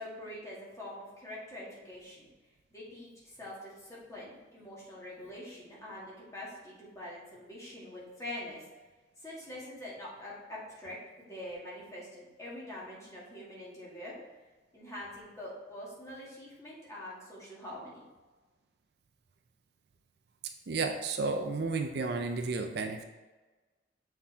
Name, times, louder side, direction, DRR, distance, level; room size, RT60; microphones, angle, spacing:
voice 1, 0.0-2.3 2.7-8.6 9.2-14.1 14.7-18.1, left 1 dB, 15° left, -7 dB, 2.1 m, -44 dB
voice 2, 20.7-23.0, right 3 dB, 60° right, 5 dB, 0.5 m, -32 dB
7.1 x 4.6 x 3.4 m, 1.2 s
head